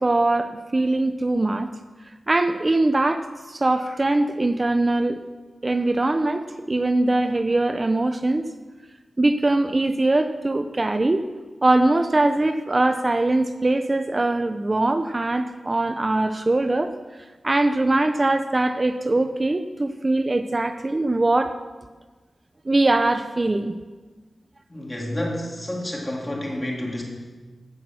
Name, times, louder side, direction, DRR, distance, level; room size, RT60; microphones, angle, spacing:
voice 1, 0.0-1.7 2.3-5.2 5.6-8.4 9.2-11.2 11.6-16.9 17.4-21.5 22.7-23.7, right 2 dB, 35° right, 9 dB, 0.6 m, -22 dB
voice 2, 24.7-27.0, left 1 dB, 25° left, -2 dB, 3.3 m, -29 dB
16.5 x 6.0 x 6.3 m, 1.3 s
cardioid pair, 55°, 0 cm